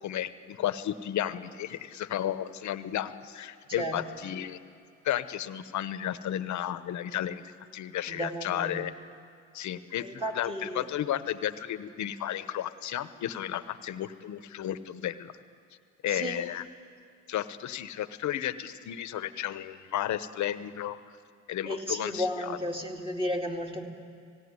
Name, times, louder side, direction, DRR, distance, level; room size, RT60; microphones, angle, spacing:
voice 1, 0.0-4.6 5.0-7.4 7.7-8.9 9.5-15.3 16.0-16.6 17.3-21.0 21.5-22.5, left 11 dB, 70° left, 13 dB, 0.9 m, -33 dB
voice 2, 8.1-8.8 10.0-10.8 16.1-16.3 21.7-23.9, equal, 15° right, 2 dB, 2.5 m, -33 dB
18.0 x 17.0 x 9.6 m, 2.4 s
cardioid pair, 90°, 30 cm